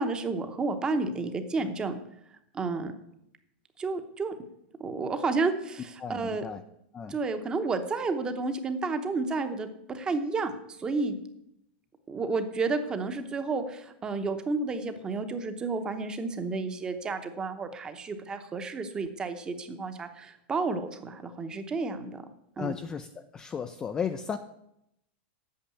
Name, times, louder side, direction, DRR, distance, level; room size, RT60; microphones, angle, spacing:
voice 1, 0.0-1.9 2.5-2.9 3.8-4.3 4.8-6.4 7.1-10.5 10.8-11.2 12.1-22.2 22.6-22.8, right 3 dB, 15° right, 9 dB, 0.8 m, -31 dB
voice 2, 6.0-6.6 6.9-7.2 22.6-23.1 23.3-24.4, left 7 dB, 10° left, 8 dB, 0.4 m, -34 dB
8.7 x 6.6 x 8.5 m, 0.79 s
supercardioid pair, 165°, 6 cm